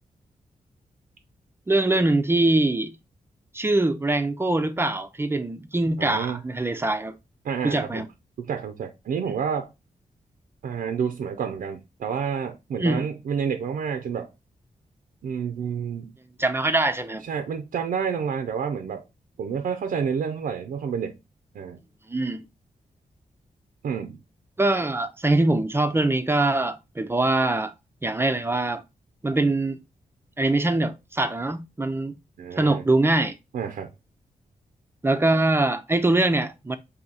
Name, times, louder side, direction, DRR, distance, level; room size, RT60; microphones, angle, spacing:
voice 1, 1.7-2.9 3.5-7.1 7.6-8.1 12.8-13.1 16.4-17.2 22.1-22.5 24.6-27.7 28.0-28.8 29.2-29.8 30.4-32.2 32.6-33.4 35.0-36.8, right 2 dB, 15° right, 0.4 m, -23 dB
voice 2, 6.0-6.4 7.4-8.1 8.4-9.7 10.6-14.3 15.2-16.1 17.2-19.1 19.4-21.2 21.5-21.8 23.8-24.2 32.4-32.8 33.5-33.9, right 7 dB, 80° right, 0.5 m, -29 dB
3.9 x 2.7 x 4.0 m
wide cardioid pair, 110°, 14 cm